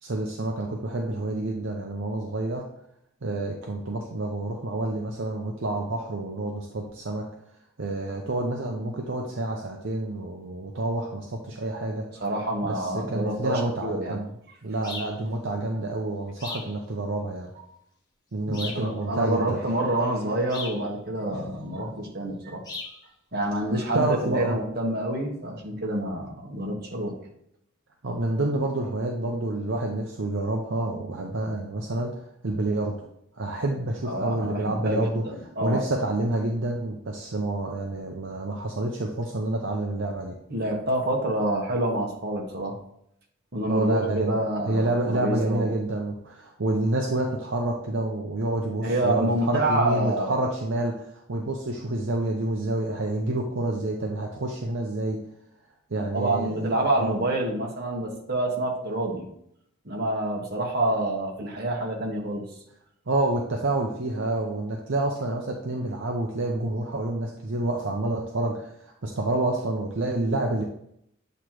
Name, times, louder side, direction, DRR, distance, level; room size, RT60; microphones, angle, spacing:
voice 1, 0.0-2.7 3.2-7.3 7.8-12.1 12.6-14.3 14.6-17.5 18.3-19.6 23.9-24.6 28.0-33.0 33.4-35.2 35.6-40.3 43.7-44.4 44.6-55.2 55.9-57.2 63.1-70.6, right 2 dB, 65° right, 0 dB, 0.7 m, -28 dB
voice 2, 12.2-14.2 17.6-17.7 18.5-22.6 23.3-27.1 34.0-35.8 40.5-42.8 43.5-45.7 48.8-50.3 55.9-59.3 59.8-62.4, right 1 dB, 50° right, 0 dB, 1.3 m, -27 dB
sound 1, 14.8-15.2 16.4-16.7 18.5-18.9 20.5-20.8 22.6-23.0, left 3 dB, 20° left, 1.1 m, -36 dB
8.1 x 3.0 x 4.7 m, 0.74 s
head